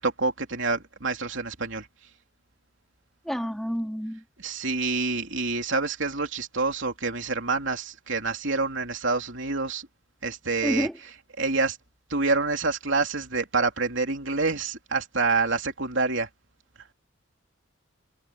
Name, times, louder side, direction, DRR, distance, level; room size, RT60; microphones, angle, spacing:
voice 1, 0.0-1.9 4.4-9.9 10.2-10.9 11.4-11.8 12.1-16.3, right 3 dB, 65° right, 3.3 m, -27 dB
voice 2, 3.2-4.2 10.6-10.9, equal, ahead, 3.1 m, -28 dB
head